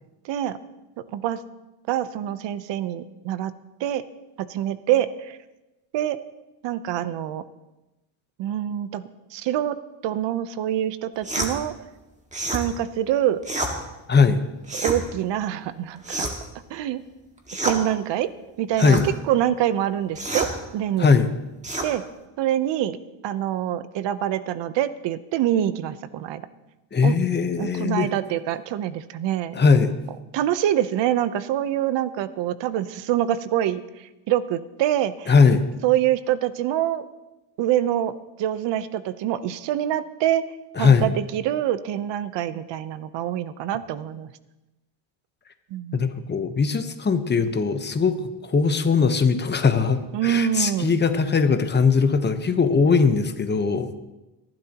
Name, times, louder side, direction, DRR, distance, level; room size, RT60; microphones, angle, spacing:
voice 1, 0.2-0.6 1.0-1.4 1.9-3.5 3.8-4.0 4.4-5.4 5.9-6.2 6.6-7.4 8.4-9.0 9.3-9.8 10.0-11.7 12.5-13.4 14.7-16.3 16.7-17.0 17.6-18.3 18.6-19.0 19.3-21.1 21.8-22.0 22.4-23.0 23.2-26.5 27.0-27.2 27.6-29.6 30.3-35.3 35.8-37.0 37.6-40.4 40.8-44.3 45.7-46.2 50.1-51.0, right 11 dB, 60° right, 14 dB, 0.9 m, -25 dB
sound 1, 11.2-11.5 12.3-12.6 13.4-13.7 14.6-15.0 16.0-16.5 17.5-17.8 18.8-19.1 20.2-20.5 21.6-21.9, right 1 dB, 15° right, 1.9 m, -28 dB
voice 2, 14.1-14.4 18.8-19.0 21.0-21.3 26.9-28.1 29.5-29.9 35.3-35.6 40.8-41.1 45.9-53.9, left 5 dB, 20° left, 8 dB, 1.0 m, -20 dB
24.0 x 12.0 x 3.0 m, 1.0 s
cardioid pair, 120°, 50 cm